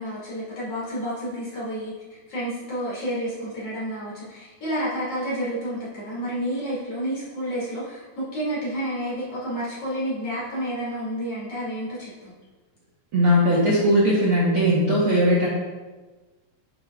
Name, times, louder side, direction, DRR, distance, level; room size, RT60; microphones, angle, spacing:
voice 1, 0.0-1.9 2.3-12.3, equal, 45° left, -8 dB, 3.6 m, -30 dB
voice 2, 13.1-15.5, equal, 50° right, -7 dB, 1.7 m, -19 dB
10.5 x 7.3 x 2.6 m, 1.3 s
omnidirectional pair, 4.1 m